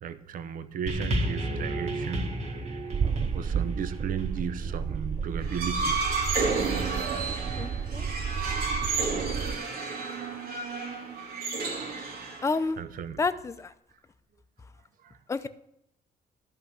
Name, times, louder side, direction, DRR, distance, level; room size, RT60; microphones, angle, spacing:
voice 1, 0.0-2.6 3.3-6.0 12.8-13.2 15.0-15.2, right 7 dB, 60° right, 12 dB, 0.8 m, -36 dB
sound 1, 0.9-5.4 6.2-6.3, right 1 dB, 45° right, 1.9 m, -33 dB
sound 2, 2.9-9.6, right 6 dB, 25° right, 0.4 m, -32 dB
sound 3, 5.4-12.7, right 4 dB, 80° right, 2.7 m, -31 dB
voice 2, 7.5-8.1 12.4-12.8 13.2-13.7 15.3-15.5, left 4 dB, 20° left, 10 dB, 0.6 m, -29 dB
13.0 x 5.7 x 8.0 m, 0.76 s
cardioid pair, 145°, 16 cm